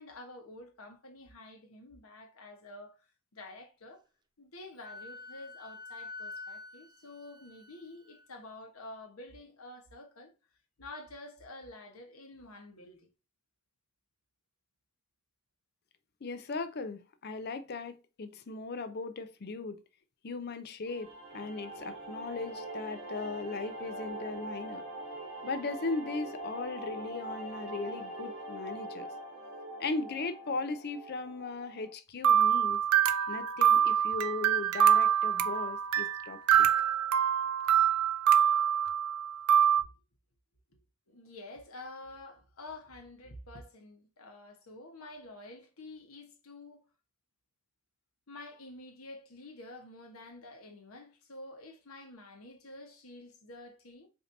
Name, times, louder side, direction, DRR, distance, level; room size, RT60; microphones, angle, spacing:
voice 1, 0.0-3.1 3.3-4.0 4.4-10.3 10.8-13.1 40.7-40.8 41.1-46.8 48.3-54.1, left 2 dB, 90° left, 1.2 m, -49 dB
Wind instrument woodwind instrument, 4.8-8.3, left 3 dB, 20° right, 0.3 m, -46 dB
voice 2, 16.2-19.8 20.2-21.1 21.3-24.8 25.4-29.1 29.8-32.8 33.3-36.7, left 3 dB, 50° left, 0.5 m, -38 dB
sound 1, 20.9-31.9, right 1 dB, 40° right, 2.3 m, -43 dB
sound 2, 32.2-39.8, right 9 dB, 85° right, 0.5 m, -25 dB
5.1 x 2.7 x 2.7 m
head